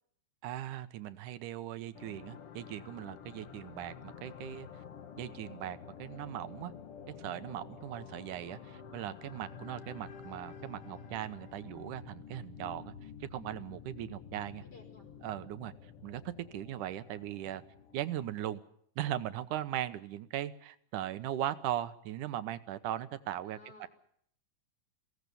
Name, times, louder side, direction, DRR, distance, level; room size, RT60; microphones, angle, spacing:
voice 1, 0.4-4.7 5.2-6.7 7.2-8.6 8.9-12.9 13.3-14.6 15.2-15.7 16.0-17.6 17.9-18.6 19.0-23.9, right 12 dB, 75° right, 12 dB, 2.4 m, -39 dB
sound 1, 1.9-18.4, left 7 dB, 55° left, 2.0 m, -50 dB
voice 2, 14.6-15.1 20.9-21.1 23.4-23.9, left 2 dB, 30° left, 2 dB, 5.3 m, -57 dB
23.0 x 17.5 x 6.8 m, 0.66 s
omnidirectional pair, 3.7 m